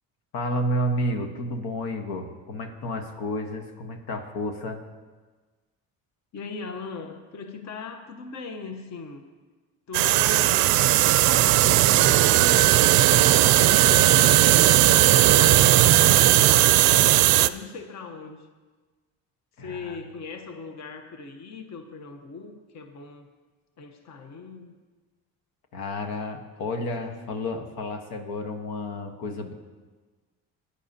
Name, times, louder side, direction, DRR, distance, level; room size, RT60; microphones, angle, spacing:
voice 1, 0.3-4.8 19.6-20.0 25.7-29.5, left 1 dB, 80° left, 5 dB, 1.3 m, -31 dB
voice 2, 6.3-9.2 9.9-12.9 13.6-14.8 15.2-18.5 19.6-23.3 23.8-24.8, left 4 dB, 50° left, 6 dB, 1.0 m, -39 dB
sound 1, 9.9-17.5, right 15 dB, 70° right, 0.5 m, -17 dB
17.0 x 10.0 x 2.8 m, 1.3 s
cardioid pair, 95°, 37 cm